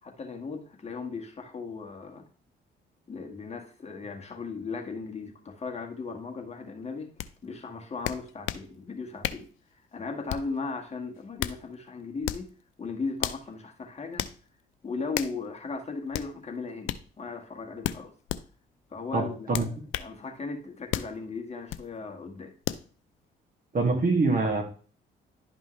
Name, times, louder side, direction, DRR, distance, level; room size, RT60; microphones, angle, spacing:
voice 1, 0.0-2.2 3.1-7.1 7.4-12.5 12.8-14.3 14.8-18.1 18.9-19.7 20.0-22.5, left 4 dB, 35° left, 3 dB, 1.8 m, -37 dB
sound 1, 7.2-7.3 8.0-8.7 9.2-9.5 10.3-10.6 11.2-11.6 12.2-12.5 13.2-13.4 14.2-14.4 15.1-15.4 16.1-16.3 16.8-17.0 17.8-18.4 19.5-20.1 20.9-21.1 21.7-21.9 22.6-22.9, left 13 dB, 85° left, 0.5 m, -32 dB
voice 2, 19.1-19.7 23.7-24.6, right 3 dB, 45° right, 2 dB, 2.3 m, -24 dB
11.0 x 5.3 x 3.2 m, 0.40 s
cardioid pair, 90°, 20 cm